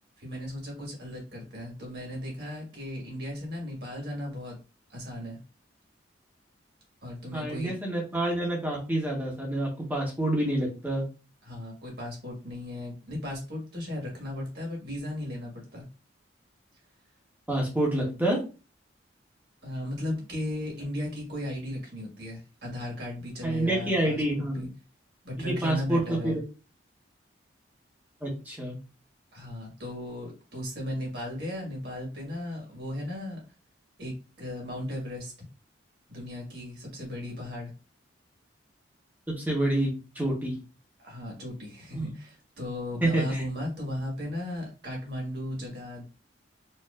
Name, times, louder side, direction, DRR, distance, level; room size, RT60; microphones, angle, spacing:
voice 1, 0.2-4.6 4.9-5.4 7.0-7.7 11.4-15.8 19.6-24.7 25.2-26.4 29.3-33.4 34.0-35.3 36.1-37.7 41.0-46.0, left 1 dB, 55° right, -1 dB, 1.6 m, -36 dB
voice 2, 7.3-11.0 17.5-18.4 23.4-24.6 25.4-26.4 28.2-28.8 39.3-39.9 40.1-40.5 41.9-42.1 43.0-43.4, right 1 dB, 10° right, -2 dB, 1.2 m, -27 dB
4.5 x 2.9 x 2.5 m, 0.32 s
head